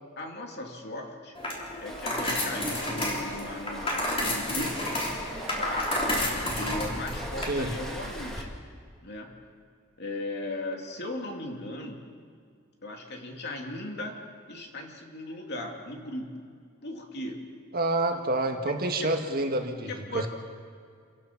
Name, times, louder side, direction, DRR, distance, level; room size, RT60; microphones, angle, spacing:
voice 1, 0.2-1.4 1.8-4.9 5.5-6.0 6.5-8.5 9.0-9.4 10.0-12.1 12.8-14.2 14.5-16.4 16.8-17.5 18.1-18.2 18.6-18.7 19.9-20.3, left 1 dB, 55° left, 1 dB, 2.8 m, -37 dB
sound 1, 1.3-7.5, left 1 dB, 25° left, 3.8 m, -31 dB
Waves surf, 1.8-8.4, equal, ahead, 2.5 m, -41 dB
voice 2, 17.7-20.3, right 2 dB, 45° right, 4 dB, 1.8 m, -28 dB
28.5 x 15.5 x 6.0 m, 2.2 s
head